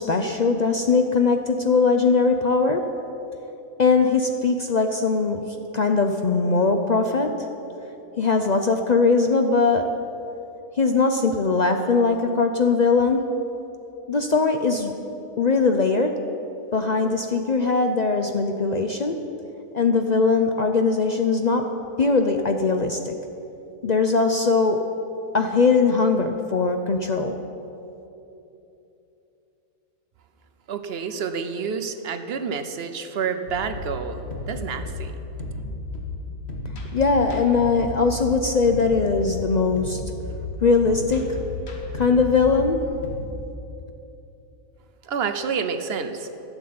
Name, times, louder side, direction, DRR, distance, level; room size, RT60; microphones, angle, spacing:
voice 1, 0.0-2.8 3.8-5.4 5.7-7.3 8.2-9.9 10.8-13.2 14.1-14.9 15.4-16.1 16.7-19.2 19.7-21.7 22.0-23.1 23.8-24.9 25.3-27.3 36.9-40.0 40.6-41.3 41.9-42.8, left 4 dB, 75° left, 5 dB, 0.4 m, -20 dB
voice 2, 30.7-35.1 45.0-46.3, right 6 dB, 50° right, 8 dB, 0.8 m, -29 dB
sound 1, 33.5-43.2, left 2 dB, 45° left, 1.5 m, -34 dB
12.5 x 7.0 x 9.4 m, 2.9 s
omnidirectional pair, 1.6 m